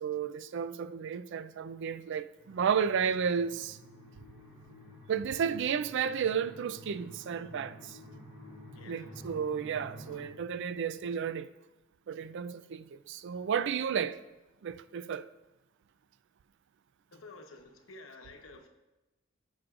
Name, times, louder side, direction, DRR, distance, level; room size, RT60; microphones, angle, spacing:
voice 1, 0.0-3.8 5.1-8.0 8.9-11.5 12.1-14.2 14.6-15.3, right 7 dB, 60° right, 0.3 m, -32 dB
sound 1, 2.4-10.2, equal, 20° right, 3.1 m, -50 dB
voice 2, 8.8-9.1 17.1-18.7, left 3 dB, 70° left, 1.0 m, -51 dB
15.5 x 6.3 x 2.4 m
head